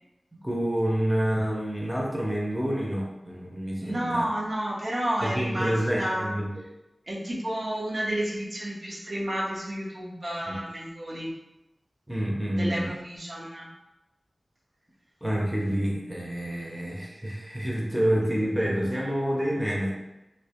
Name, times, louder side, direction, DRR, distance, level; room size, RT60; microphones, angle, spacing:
voice 1, 0.3-4.3 5.2-6.6 10.5-10.6 12.1-13.0 15.2-20.0, equal, 5° right, -4 dB, 0.5 m, -28 dB
voice 2, 3.8-6.3 7.1-11.3 12.6-13.7, right 1 dB, 65° right, -5 dB, 0.6 m, -31 dB
2.5 x 2.1 x 2.8 m, 0.95 s
wide cardioid pair, 75°, 0 cm